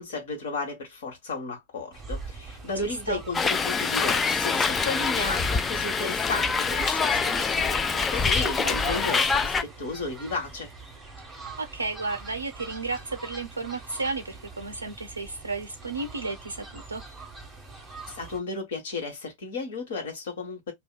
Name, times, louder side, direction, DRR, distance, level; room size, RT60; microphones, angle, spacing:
voice 1, 0.0-10.7 18.1-20.7, left 3 dB, 60° left, 1.3 m, -34 dB
Fowl, 1.9-18.4, right 3 dB, 5° right, 1.2 m, -43 dB
voice 2, 2.8-3.2 8.6-9.1 11.6-17.0, right 3 dB, 80° right, 0.4 m, -33 dB
Hiss, 3.3-9.6, left 5 dB, 15° left, 0.3 m, -25 dB
2.6 x 2.3 x 2.2 m
figure-of-eight pair, 90°, 0 cm